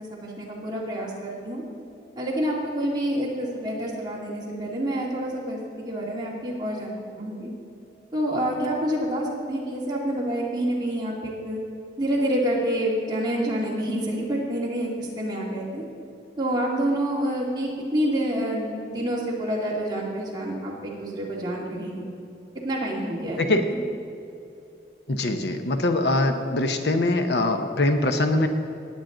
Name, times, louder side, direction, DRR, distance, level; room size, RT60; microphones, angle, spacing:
voice 1, 0.0-1.6 2.2-5.6 5.9-7.5 8.1-11.6 12.0-15.8 16.4-22.0 22.6-23.8, right 1 dB, 25° right, -4 dB, 2.2 m, -28 dB
voice 2, 25.1-28.5, left 2 dB, 70° left, 7 dB, 0.8 m, -23 dB
18.0 x 8.7 x 3.9 m, 2.7 s
head